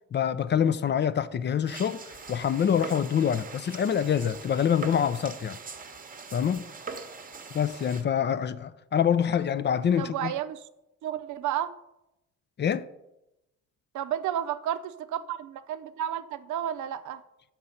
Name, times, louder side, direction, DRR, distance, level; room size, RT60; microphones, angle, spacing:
voice 1, 0.1-5.6 6.3-6.7 7.5-10.3 12.6-12.9, left 8 dB, 40° left, 0.4 m, -26 dB
sound 1, 1.6-8.0, right 4 dB, 30° right, 0.9 m, -42 dB
voice 2, 10.0-10.7 11.0-11.7 13.9-17.2, right 10 dB, 75° right, 0.6 m, -32 dB
6.4 x 6.0 x 5.5 m
cardioid pair, 90°, 30 cm